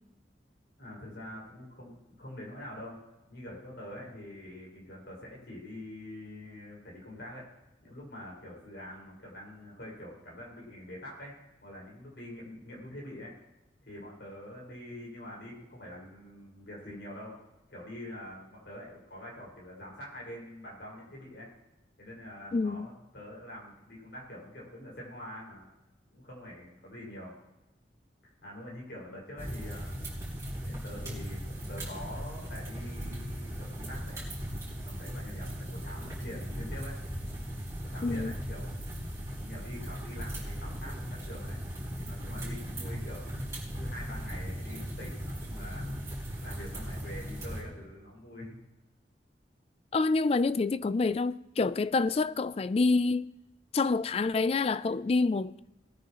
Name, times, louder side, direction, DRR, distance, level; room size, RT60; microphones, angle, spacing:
voice 1, 0.8-3.0 3.3-7.5 7.8-11.4 11.6-13.3 13.8-17.4 17.7-21.5 22.0-25.7 26.1-27.4 28.4-30.0 30.6-34.3 34.8-37.0 37.8-38.7 39.3-41.6 42.0-43.3 43.8-45.9 46.4-48.5, left 1 dB, 65° left, 5.4 m, -45 dB
voice 2, 22.5-22.9 38.0-38.3 49.9-53.3 53.7-55.5, left 3 dB, 35° left, 0.3 m, -27 dB
sound 1, 29.4-47.6, equal, 15° right, 4.5 m, -38 dB
20.0 x 9.6 x 3.0 m
head